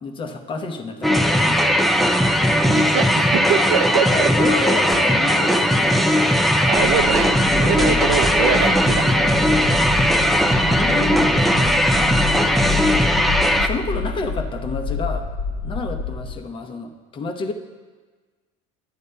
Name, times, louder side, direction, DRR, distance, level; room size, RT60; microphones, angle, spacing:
voice 1, 0.0-2.0 4.1-6.3 7.5-12.8 13.6-15.3 15.6-17.5, left 3 dB, 35° left, 5 dB, 0.8 m, -30 dB
sound 1, 1.0-13.7, equal, ahead, 0.4 m, -18 dB
voice 2, 2.7-4.3 6.7-9.3 11.3-11.6, right 7 dB, 75° right, 7 dB, 0.6 m, -24 dB
sound 2, 6.8-16.3, left 4 dB, 80° left, 1.5 m, -28 dB
11.0 x 8.9 x 2.2 m, 1.4 s
supercardioid pair, 100°, 15 cm